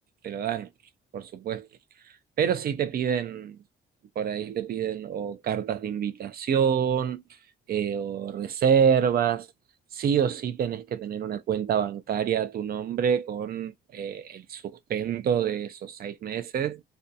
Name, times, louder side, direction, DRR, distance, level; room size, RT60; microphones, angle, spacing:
voice 1, 0.2-0.7 1.1-1.7 2.4-3.6 4.2-7.2 7.7-9.5 9.9-16.8, right 8 dB, 50° right, 0.4 m, -27 dB
2.5 x 2.2 x 2.6 m
cardioid pair, 90°, 20 cm